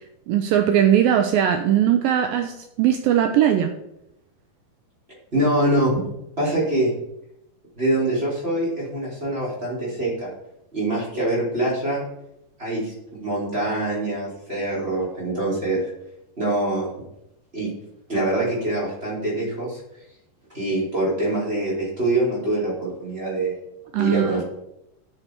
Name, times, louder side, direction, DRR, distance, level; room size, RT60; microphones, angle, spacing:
voice 1, 0.3-3.7 23.9-24.4, right 10 dB, 80° right, 6 dB, 2.2 m, -19 dB
voice 2, 5.3-5.9 6.4-6.9 7.8-10.3 10.7-12.0 12.6-15.9 16.4-16.9 17.5-17.7 18.1-19.8 20.5-23.5 23.9-24.4, right 1 dB, 15° right, -5 dB, 3.3 m, -24 dB
9.9 x 7.7 x 4.6 m, 0.83 s
omnidirectional pair, 4.4 m